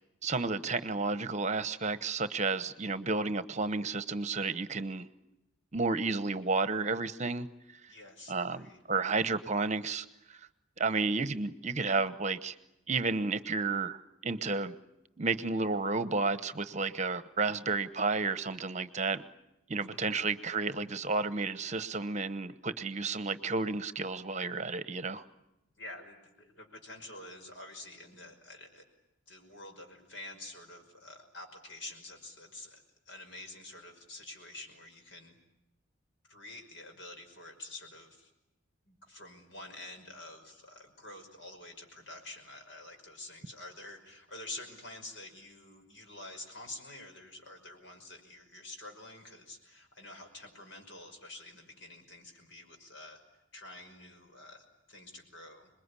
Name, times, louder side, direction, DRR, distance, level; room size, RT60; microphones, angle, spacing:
voice 1, 0.2-5.1 5.7-7.5 7.7-7.9 8.3-10.0 10.3-10.4 10.8-12.5 12.9-14.0 14.2-14.7 15.2-19.2 19.7-25.2, right 3 dB, 35° right, 13 dB, 1.0 m, -32 dB
voice 2, 7.9-8.8 19.7-20.1 25.8-28.8 29.3-35.4 36.3-38.3 38.9-55.7, left 2 dB, 65° left, 5 dB, 5.7 m, -48 dB
27.0 x 21.5 x 9.9 m, 0.91 s
head